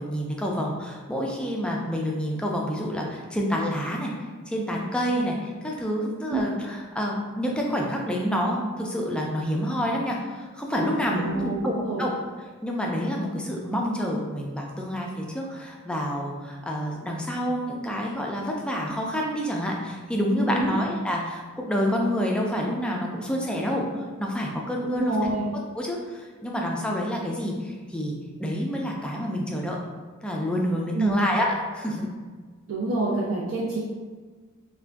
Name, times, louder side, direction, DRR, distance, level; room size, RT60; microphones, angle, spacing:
voice 1, 0.0-4.1 4.5-12.1 12.6-25.1 25.7-28.1 28.4-29.8 30.2-32.1, equal, 5° left, -1 dB, 0.3 m, -28 dB
voice 2, 11.1-12.1 20.5-20.7 24.9-25.5 30.9-31.1 32.7-33.8, right 2 dB, 65° right, -7 dB, 0.5 m, -27 dB
3.3 x 2.2 x 2.5 m, 1.4 s
head